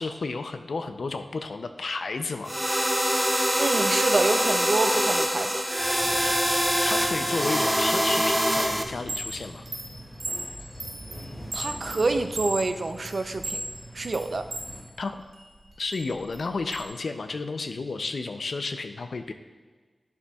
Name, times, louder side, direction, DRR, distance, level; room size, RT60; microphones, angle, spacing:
voice 1, 0.0-2.6 6.8-9.6 15.0-15.2 15.8-19.3, left 3 dB, 80° left, 8 dB, 0.5 m, -32 dB
sound 1, 2.5-8.8, equal, 10° right, 0.5 m, -24 dB
voice 2, 3.6-5.6 11.5-13.6 13.9-14.5, right 3 dB, 60° right, 8 dB, 0.5 m, -27 dB
sound 2, 5.8-14.8, equal, 10° left, 2.1 m, -44 dB
Chime, 8.9-14.7 15.2-16.9, right 2 dB, 75° right, 1.4 m, -36 dB
11.0 x 7.0 x 2.3 m, 1.5 s
wide cardioid pair, 100°, 0 cm